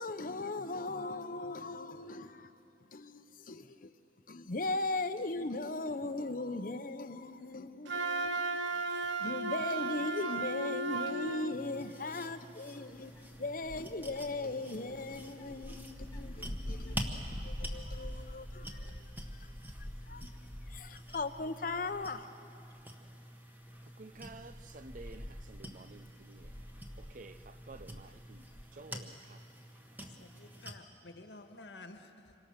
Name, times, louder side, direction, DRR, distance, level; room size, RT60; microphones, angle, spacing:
voice 1, 0.0-2.5 2.9-3.9 4.3-8.6 8.9-13.1 13.4-19.0 19.4-19.5 20.0-20.3 20.7-22.2, left 2 dB, 45° left, 0.8 m, -38 dB
Wind instrument woodwind instrument, 7.9-11.6, right 3 dB, 85° right, 0.9 m, -35 dB
sound 1, 11.5-30.8, right 1 dB, 10° right, 1.4 m, -48 dB
sound 2, 12.9-21.4 21.7-22.2 22.7-22.8 23.7-28.6, equal, 20° left, 1.1 m, -45 dB
voice 2, 24.0-26.5 27.0-28.4 28.8-29.4 30.0-30.2, right 3 dB, 45° right, 0.6 m, -52 dB
voice 3, 30.1-32.3, left 2 dB, 70° left, 1.5 m, -52 dB
27.0 x 24.0 x 6.6 m
head